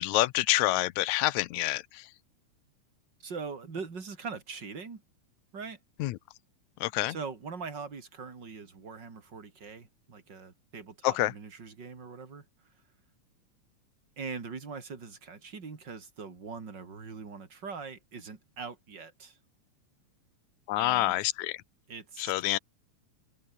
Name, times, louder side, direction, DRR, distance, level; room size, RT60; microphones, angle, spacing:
voice 1, 0.0-2.1 6.0-6.2 6.8-7.2 11.0-11.3 20.7-21.6 22.2-22.6, left 17 dB, 75° left, 1.8 m, -27 dB
voice 2, 3.2-5.0 5.5-5.8 7.1-12.5 14.2-19.4 20.8-21.2 21.9-22.3, right 5 dB, 30° right, 3.6 m, -42 dB
omnidirectional pair, 3.8 m